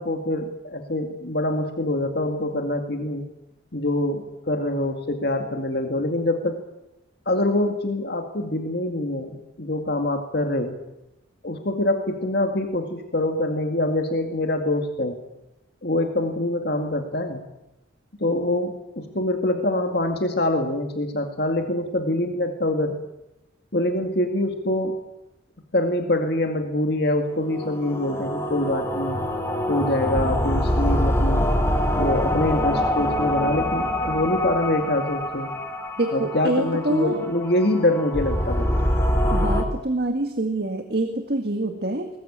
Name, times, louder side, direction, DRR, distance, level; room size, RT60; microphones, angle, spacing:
voice 1, 0.0-3.2 3.7-6.6 7.3-10.8 11.4-15.2 15.8-17.4 18.2-23.0 23.7-24.9 25.7-29.2 29.7-31.5 31.9-35.5 36.1-38.7, left 1 dB, 55° left, 4 dB, 2.1 m, -25 dB
sound 1, 27.4-39.6, left 1 dB, 15° left, 2.8 m, -25 dB
voice 2, 36.0-37.3 39.3-42.1, right 1 dB, 55° right, 5 dB, 1.9 m, -25 dB
22.0 x 19.5 x 8.8 m, 0.91 s
head